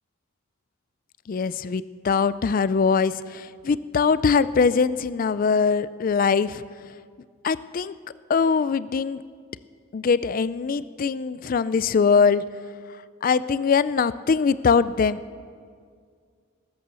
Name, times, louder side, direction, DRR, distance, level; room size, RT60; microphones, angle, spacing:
voice 1, 1.3-6.6 7.4-7.9 8.3-9.2 9.9-12.4 13.2-15.2, left 5 dB, 40° left, 16 dB, 0.3 m, -22 dB
20.0 x 8.5 x 6.9 m, 2.1 s
head